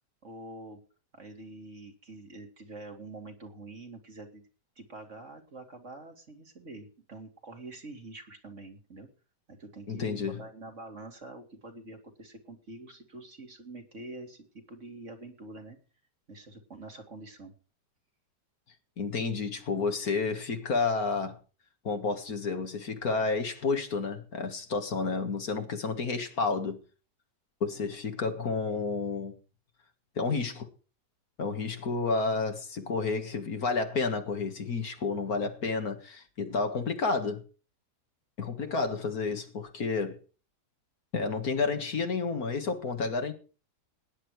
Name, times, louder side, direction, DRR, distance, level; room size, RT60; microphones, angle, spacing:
voice 1, 0.2-0.8 1.1-4.4 4.8-9.1 9.5-15.8 16.3-17.5, right 2 dB, 45° right, 2.6 m, -46 dB
voice 2, 9.9-10.4 19.0-21.4 21.8-26.8 27.6-29.4 30.2-30.7 31.4-37.4 38.4-40.2 41.1-43.3, left 4 dB, 60° left, 2.2 m, -30 dB
17.0 x 10.0 x 4.8 m
omnidirectional pair, 1.8 m